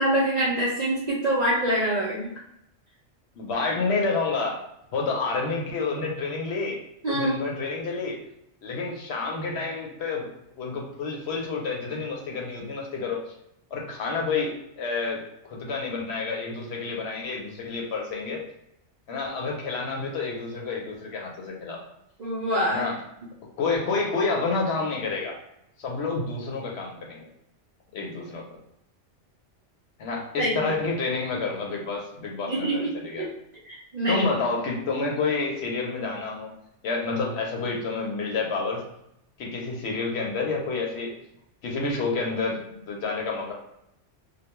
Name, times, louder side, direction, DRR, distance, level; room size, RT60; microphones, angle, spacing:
voice 1, 0.0-2.3 7.0-7.4 22.2-22.8 30.4-30.6 32.5-33.3 33.7-34.2, right 1 dB, 50° right, -7 dB, 0.5 m, -25 dB
voice 2, 3.4-4.6 4.9-6.8 7.1-8.2 8.6-10.3 10.6-13.2 13.7-18.4 19.1-21.8 22.7-23.0 23.6-25.4 25.8-27.3 27.9-28.4 30.0-33.3 34.1-36.5 36.8-38.8 39.4-41.1 41.6-43.5, left 4 dB, 65° left, -1 dB, 0.8 m, -29 dB
2.2 x 2.2 x 2.9 m, 0.79 s
omnidirectional pair, 1.2 m